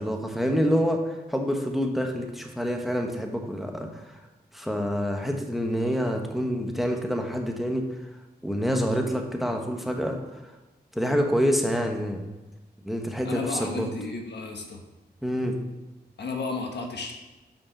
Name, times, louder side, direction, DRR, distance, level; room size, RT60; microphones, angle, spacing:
voice 1, 0.0-4.2 4.5-7.9 8.4-10.2 10.9-12.2 12.8-13.9 15.2-15.6, equal, ahead, 3 dB, 1.1 m, -27 dB
voice 2, 13.2-14.8 16.2-17.1, left 3 dB, 85° left, 2 dB, 1.4 m, -33 dB
7.2 x 6.0 x 5.8 m, 1.1 s
wide cardioid pair, 110°, 17 cm